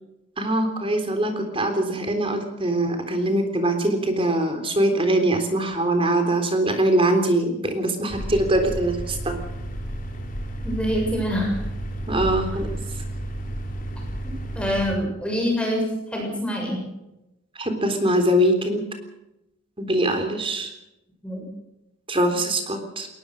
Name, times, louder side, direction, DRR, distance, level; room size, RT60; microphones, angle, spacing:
voice 1, 0.4-9.4 12.1-12.7 17.6-18.8 19.8-20.7 22.1-23.1, right 1 dB, 25° right, 6 dB, 3.6 m, -22 dB
sound 1, 8.1-14.9, right 1 dB, 40° left, 3.5 m, -31 dB
voice 2, 10.6-11.6 14.5-15.8 16.1-16.8 21.2-21.4, equal, 5° left, 0 dB, 6.8 m, -25 dB
21.5 x 20.0 x 6.5 m, 0.92 s
head